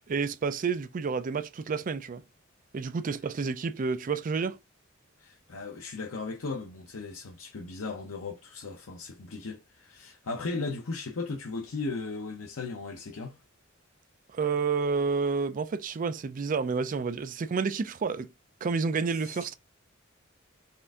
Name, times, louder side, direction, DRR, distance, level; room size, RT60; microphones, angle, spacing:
voice 1, 0.1-2.2 2.7-4.6 14.3-18.3 18.6-19.5, right 5 dB, 40° right, 0.4 m, -29 dB
voice 2, 5.2-13.4 19.1-19.5, left 3 dB, 80° left, 0.7 m, -37 dB
4.3 x 2.5 x 3.5 m
head